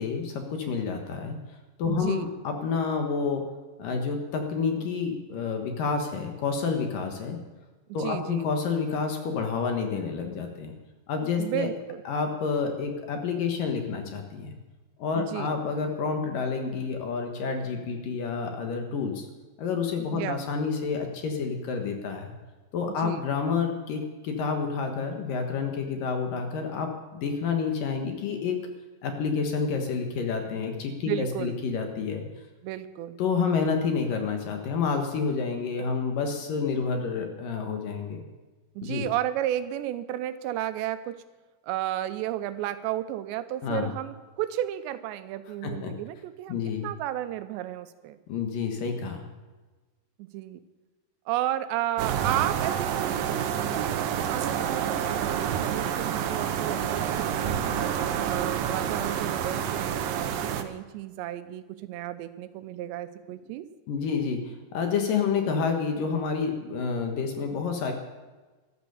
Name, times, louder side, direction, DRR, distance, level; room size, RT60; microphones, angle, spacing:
voice 1, 0.0-1.4 1.8-3.4 3.8-7.4 7.9-10.7 11.1-11.7 12.1-14.5 15.0-19.3 19.6-22.3 22.7-28.6 29.0-32.2 33.2-38.2 38.8-39.1 43.6-43.9 45.6-45.9 46.5-46.9 48.3-49.3 63.9-67.9, left 5 dB, 65° left, 4 dB, 2.7 m, -29 dB
voice 2, 1.9-2.3 8.0-8.5 11.4-12.0 15.2-15.5 20.1-20.4 22.9-23.2 31.0-31.6 32.6-33.2 38.8-41.2 41.6-46.6 46.8-48.2 50.2-50.6 51.3-57.9 58.3-63.7, right 13 dB, 85° right, 12 dB, 3.0 m, -33 dB
sound 1, 52.0-60.6, right 9 dB, 70° right, 2.2 m, -28 dB
13.0 x 12.5 x 7.0 m, 1.3 s
omnidirectional pair, 4.9 m